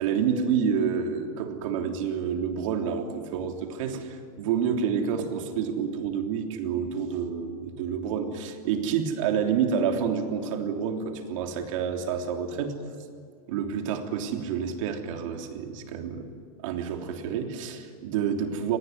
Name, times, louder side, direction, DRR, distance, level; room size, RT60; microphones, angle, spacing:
voice 1, 0.0-12.7 13.5-16.3 16.6-18.8, right 7 dB, 60° right, 4 dB, 3.3 m, -28 dB
25.5 x 19.5 x 9.5 m, 2.2 s
supercardioid pair, 150°, 19 cm